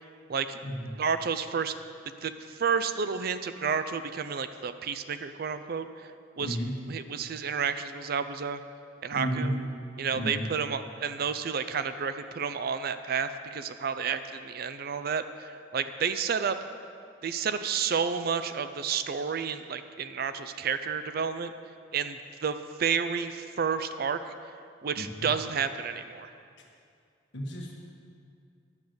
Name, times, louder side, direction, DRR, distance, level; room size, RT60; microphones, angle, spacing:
voice 1, 1.0-1.7 2.2-5.9 6.4-6.6 6.9-8.6 9.0-9.6 10.0-16.6 17.2-21.5 21.9-24.3 24.8-26.3, right 6 dB, 55° right, 11 dB, 0.4 m, -31 dB
voice 2, 6.4-6.7 9.1-9.5 10.1-10.4 25.0-25.1 27.3-27.7, equal, 65° left, -1 dB, 1.4 m, -32 dB
11.0 x 6.9 x 7.8 m, 2.4 s
head